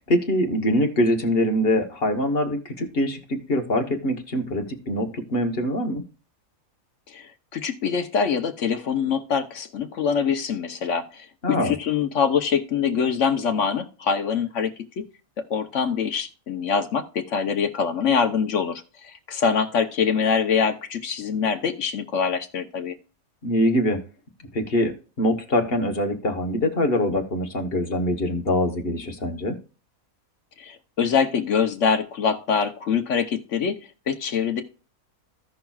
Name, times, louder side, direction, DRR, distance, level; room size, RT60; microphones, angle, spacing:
voice 1, 0.1-6.0 11.4-11.7 23.4-24.0 24.5-29.5, left 1 dB, 45° left, 5 dB, 1.4 m, -23 dB
voice 2, 7.1-14.7 15.5-22.9 30.6-33.8 34.1-34.6, left 6 dB, 65° left, 8 dB, 1.1 m, -24 dB
15.5 x 5.8 x 2.3 m, 0.35 s
omnidirectional pair, 1.5 m